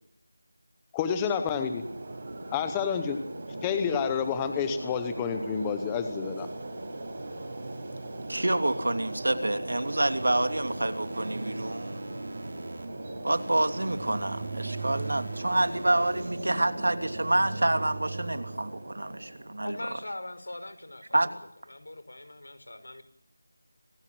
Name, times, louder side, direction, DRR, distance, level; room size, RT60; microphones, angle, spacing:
voice 1, 0.9-1.8 2.5-3.2 3.6-6.5, left 7 dB, 5° left, 0.9 m, -29 dB
sound 1, 1.5-19.7, right 2 dB, 25° right, 5.2 m, -38 dB
voice 2, 8.3-12.1 13.2-19.8 21.1-21.3, right 1 dB, 75° right, 3.0 m, -27 dB
sound 2, 9.8-12.8 13.3-16.3, right 1 dB, 45° right, 4.3 m, -43 dB
voice 3, 19.6-21.3 21.7-23.0, left 1 dB, 85° left, 5.3 m, -41 dB
25.5 x 17.5 x 7.7 m
figure-of-eight pair, 180°, 0 cm